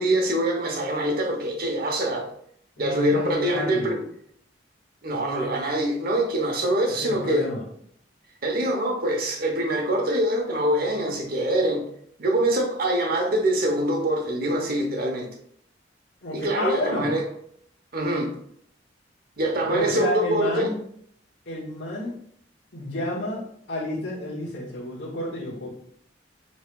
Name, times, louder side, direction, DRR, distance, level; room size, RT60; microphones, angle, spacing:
voice 1, 0.0-2.3 2.8-4.0 5.0-7.5 8.4-11.8 12.2-15.3 16.3-17.3 17.9-18.3 19.4-20.7, right 1 dB, 55° right, 1.0 m, -24 dB
voice 2, 2.8-3.9 6.9-7.6 16.2-17.1 19.6-20.8 21.4-22.1 22.7-25.7, left 1 dB, 65° left, 1.6 m, -30 dB
7.0 x 3.2 x 2.3 m
head